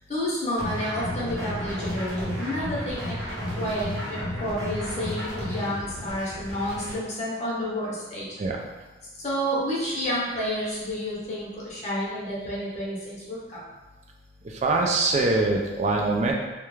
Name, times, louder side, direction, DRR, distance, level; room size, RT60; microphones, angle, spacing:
voice 1, 0.0-8.2 9.2-13.6, equal, 40° left, -6 dB, 0.7 m, -30 dB
sound 1, 0.6-7.0, left 1 dB, 75° right, 0.8 m, -33 dB
voice 2, 14.6-16.3, right 3 dB, 35° right, 1 dB, 0.3 m, -23 dB
2.3 x 2.1 x 3.0 m, 1.2 s
head